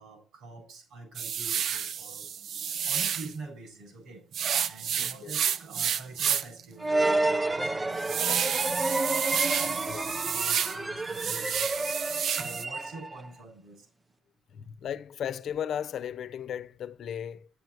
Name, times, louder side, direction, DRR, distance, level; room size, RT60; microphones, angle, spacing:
voice 1, 0.0-2.3 2.9-4.2 4.7-9.0 9.4-11.8 12.3-13.9, right 3 dB, 80° right, 8.0 m, -46 dB
sound 1, 1.1-3.3 4.3-6.6 7.0-7.1 7.6-10.8 11.1-12.6, right 8 dB, 65° right, 0.8 m, -30 dB
voice 2, 5.0-5.3 9.9-10.0 14.5-17.5, left 9 dB, 65° left, 0.9 m, -35 dB
sound 2, 6.8-13.3, right 2 dB, 15° right, 0.9 m, -30 dB
10.0 x 9.5 x 4.6 m
cardioid pair, 90°, 0 cm